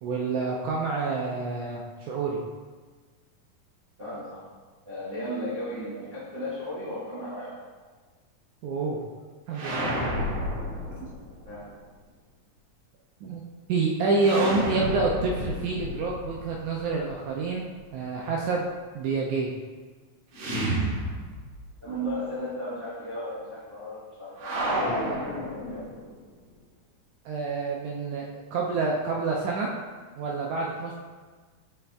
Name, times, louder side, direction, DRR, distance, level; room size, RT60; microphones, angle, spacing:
voice 1, 0.0-2.4 8.6-9.0 9.5-10.0 13.2-13.4 13.7-18.7 19.0-19.5 27.3-29.7 30.2-30.9, right 3 dB, 85° right, -1 dB, 1.7 m, -28 dB
voice 2, 4.0-4.4 4.8-7.6 11.4-11.7 21.8-24.9 25.4-25.9, equal, 35° right, -12 dB, 0.9 m, -35 dB
sound 1, 9.5-11.5 14.2-17.2 20.3-21.7 22.0-22.1 24.4-26.1, equal, 65° right, 2.8 m, -31 dB
5.7 x 5.1 x 3.4 m, 1.4 s
omnidirectional pair, 4.0 m